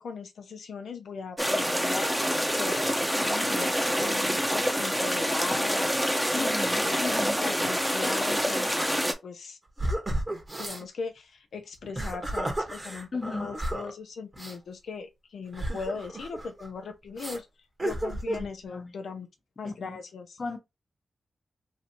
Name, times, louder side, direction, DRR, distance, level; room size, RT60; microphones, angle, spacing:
voice 1, 0.0-9.6 10.6-17.5 17.8-19.3 19.6-20.4, left 5 dB, 80° left, 0.6 m, -39 dB
sound 1, 1.4-9.1, equal, 5° right, 0.9 m, -26 dB
voice 2, 6.3-7.4 13.1-13.5 18.3-18.9 19.6-20.0 20.4-20.6, left 3 dB, 55° left, 1.0 m, -35 dB
sound 2, 9.8-10.8 11.7-13.9 14.3-14.5 15.5-16.7 17.2-17.4 17.8-18.5, right 1 dB, 30° right, 1.3 m, -32 dB
3.2 x 2.5 x 2.9 m
cardioid pair, 45°, 0 cm